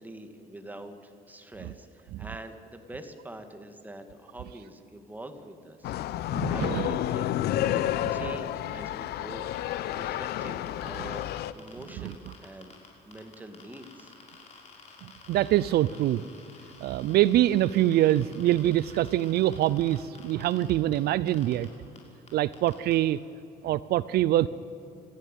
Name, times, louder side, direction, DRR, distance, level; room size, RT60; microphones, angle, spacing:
voice 1, 0.0-7.3 8.1-9.5 9.9-12.7 13.0-14.1, right 1 dB, 10° right, 7 dB, 2.1 m, -44 dB
sound 1, 5.8-11.5, left 12 dB, 75° left, 0.8 m, -30 dB
voice 2, 6.3-6.9 7.7-8.4 12.0-12.1 15.0-16.2 16.8-21.7 22.3-23.2 23.6-24.5, right 14 dB, 70° right, 18 dB, 0.5 m, -25 dB
sound 2, 9.6-12.9 13.1-21.0 21.3-21.7 22.0-22.1 22.3-22.9, left 5 dB, 40° left, 6.2 m, -51 dB
27.5 x 14.5 x 9.2 m, 2.6 s
cardioid pair, 110°, 17 cm